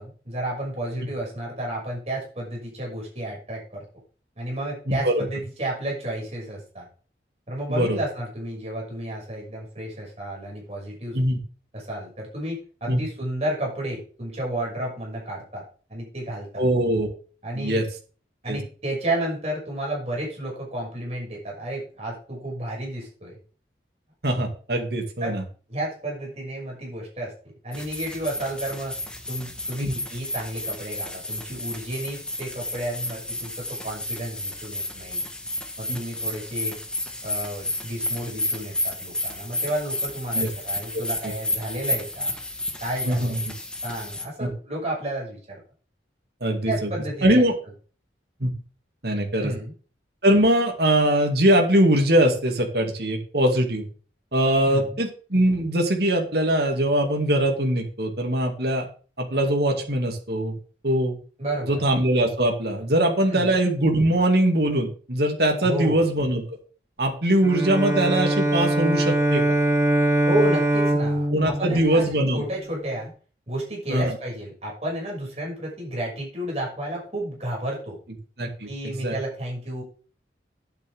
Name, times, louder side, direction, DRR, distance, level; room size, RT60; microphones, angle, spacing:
voice 1, 0.0-3.8 4.4-6.9 7.5-11.2 11.7-15.6 15.9-16.6 17.4-17.8 18.4-23.3 25.2-25.4 25.7-27.3 27.6-29.0 29.3-35.2 35.8-36.8 37.2-42.3 42.8-43.5 43.8-45.6 46.6-47.4 49.4-49.7 54.6-55.0 61.4-61.8 63.2-63.6 65.6-66.1 70.3-73.1 73.5-78.0 78.7-79.8, right 1 dB, 35° right, -2 dB, 6.1 m, -31 dB
voice 2, 4.9-5.2 7.7-8.0 11.1-11.4 12.9-13.0 16.6-17.1 17.6-17.9 18.5-18.6 24.2-25.4 29.8-29.9 35.9-36.0 40.3-40.5 40.9-41.0 43.0-43.4 44.4-44.5 46.4-46.9 47.2-47.5 48.4-48.5 49.0-49.5 50.2-53.9 54.3-58.9 59.2-60.6 60.8-61.2 61.7-66.4 67.0-69.4 71.3-72.4 73.9-74.2 78.4-78.7 79.0-79.1, right 1 dB, 65° right, 2 dB, 2.3 m, -22 dB
sound 1, 27.7-44.2, left 1 dB, 5° left, 1.3 m, -32 dB
Bowed string instrument, 67.4-72.7, right 1 dB, 15° right, 1.2 m, -23 dB
10.5 x 9.0 x 3.6 m, 0.38 s
head